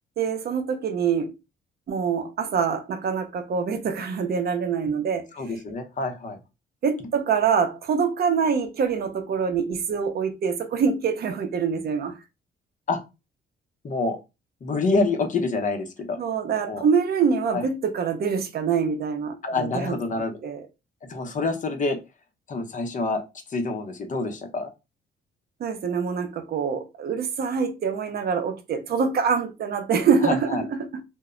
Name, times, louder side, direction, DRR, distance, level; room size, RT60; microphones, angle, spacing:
voice 1, 0.2-1.3 1.9-5.3 6.8-12.2 16.2-19.9 20.4-20.6 25.6-31.0, right 6 dB, 50° right, 0.6 m, -25 dB
voice 2, 5.3-6.4 12.9-13.0 13.8-14.2 14.6-16.2 16.7-16.8 17.5-17.6 19.4-20.4 21.0-22.0 22.5-23.2 23.5-24.7 30.2-30.6, left 3 dB, 40° left, 0.7 m, -27 dB
2.1 x 2.0 x 3.6 m
cardioid pair, 90°, 20 cm